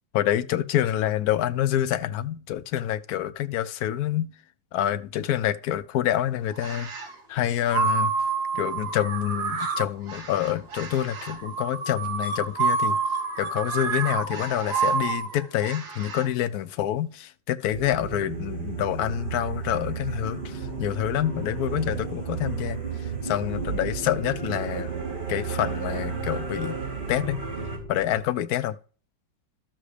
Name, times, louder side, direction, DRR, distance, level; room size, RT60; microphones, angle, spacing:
voice 1, 0.1-4.3 4.7-6.9 7.3-8.1 8.5-13.0 13.4-25.0 25.3-26.8 27.1-27.4 27.9-28.8, left 12 dB, 70° left, 0.9 m, -27 dB
sound 1, 6.5-7.1 7.7-16.3, right 5 dB, 55° right, 2.1 m, -28 dB
sound 2, 17.7-27.8, right 6 dB, 25° right, 3.3 m, -33 dB
sound 3, 20.2-28.2, right 1 dB, 5° left, 2.3 m, -41 dB
12.5 x 7.4 x 3.3 m
omnidirectional pair, 2.1 m